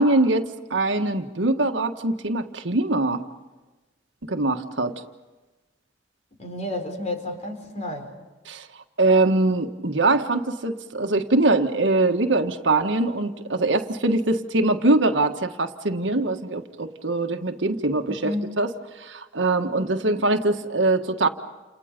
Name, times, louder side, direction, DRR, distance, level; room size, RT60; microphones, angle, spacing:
voice 1, 0.0-3.2 4.3-5.0 8.4-8.7 9.0-18.7 19.0-21.3, right 2 dB, 80° right, 6 dB, 1.6 m, -22 dB
voice 2, 6.4-8.1 18.1-18.5, left 1 dB, 40° left, 5 dB, 4.2 m, -31 dB
29.5 x 29.0 x 5.3 m, 1.2 s
head